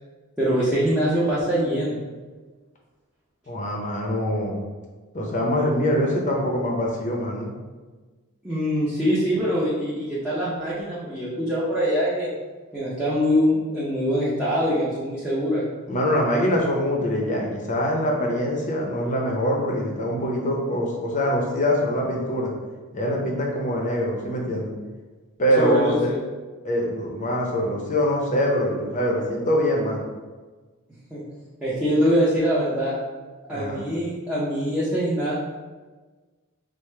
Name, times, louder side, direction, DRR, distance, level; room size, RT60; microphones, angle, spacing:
voice 1, 0.4-2.0 8.4-12.3 12.7-15.6 25.6-26.2 31.1-31.2 31.6-32.9 33.5-35.3, equal, 5° right, -10 dB, 0.6 m, -23 dB
voice 2, 3.5-4.6 5.1-7.5 15.9-22.5 22.9-24.7 25.4-26.1 26.6-30.0 33.5-33.8, equal, 35° left, -1 dB, 0.6 m, -24 dB
4.7 x 2.1 x 3.2 m, 1.3 s
head